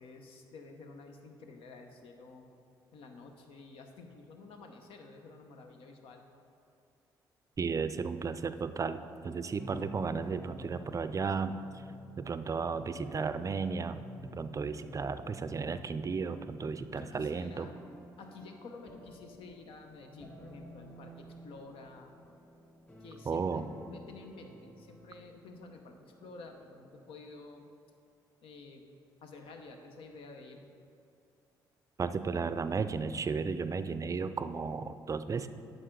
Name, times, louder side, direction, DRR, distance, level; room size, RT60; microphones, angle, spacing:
voice 1, 0.0-2.5 2.9-6.2 16.9-17.7 18.2-22.1 23.0-27.7 28.4-28.8 29.2-30.7, left 3 dB, 70° left, 4 dB, 0.8 m, -50 dB
voice 2, 7.6-11.6 12.2-14.0 14.4-17.7 23.3-23.6 32.0-35.5, right 5 dB, 35° right, 11 dB, 0.4 m, -34 dB
sound 1, 9.6-27.0, equal, 20° left, 2.1 m, -53 dB
9.4 x 6.4 x 3.8 m, 2.4 s
supercardioid pair, 60°, 10 cm